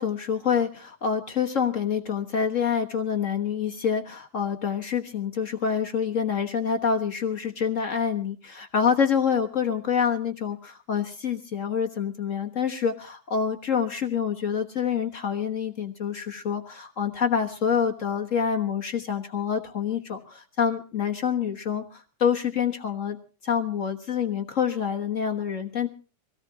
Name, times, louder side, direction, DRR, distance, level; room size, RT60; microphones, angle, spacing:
voice 1, 0.0-23.2 23.4-25.9, left 7 dB, 55° left, 4 dB, 0.8 m, -27 dB
24.5 x 17.5 x 2.9 m, 0.35 s
omnidirectional pair, 3.4 m